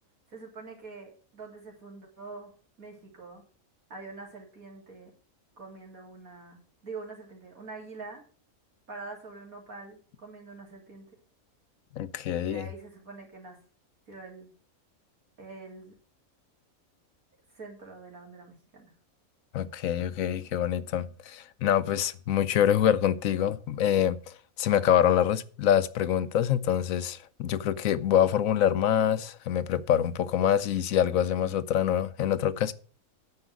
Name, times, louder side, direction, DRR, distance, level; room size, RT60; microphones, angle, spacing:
voice 1, 0.3-2.5 2.8-3.4 3.9-5.1 5.6-8.2 8.9-11.1 12.3-13.6 14.1-14.5 15.4-15.9 17.5-18.9, right 3 dB, 80° right, 3.6 m, -45 dB
voice 2, 11.9-12.7 19.5-24.2 24.6-32.7, left 10 dB, 75° left, 1.1 m, -25 dB
9.7 x 5.5 x 8.0 m
omnidirectional pair, 1.5 m